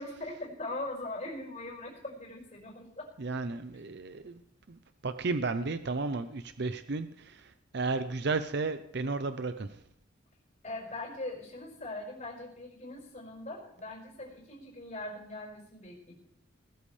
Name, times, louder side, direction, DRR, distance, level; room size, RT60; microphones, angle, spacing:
voice 1, 0.0-3.1 10.6-16.1, left 2 dB, 35° left, -3 dB, 5.1 m, -41 dB
voice 2, 3.2-4.4 5.0-7.3 7.7-9.7, right 3 dB, 60° right, 10 dB, 0.7 m, -33 dB
19.5 x 14.0 x 3.3 m, 0.71 s
head